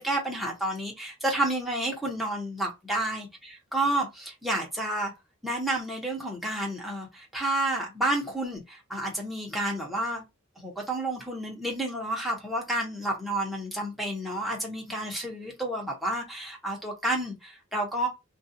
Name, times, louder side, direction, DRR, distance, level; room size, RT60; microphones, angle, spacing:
voice 1, 0.0-5.1 5.4-10.2 10.6-18.1, right 1 dB, ahead, 0.8 m, -30 dB
2.5 x 2.3 x 2.7 m
head